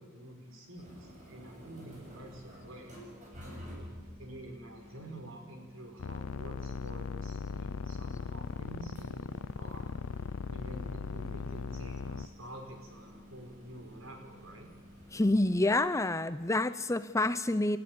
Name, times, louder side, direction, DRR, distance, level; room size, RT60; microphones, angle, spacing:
voice 1, 0.0-3.0 4.2-9.9 10.5-14.7, right 1 dB, 65° right, 4 dB, 5.2 m, -48 dB
sound 1, 0.7-15.8, equal, 35° right, 7.0 m, -52 dB
sound 2, 6.0-12.3, left 4 dB, 85° left, 0.6 m, -38 dB
voice 2, 15.1-17.8, left 2 dB, 15° left, 13 dB, 0.6 m, -28 dB
28.5 x 13.5 x 9.6 m, 1.4 s
head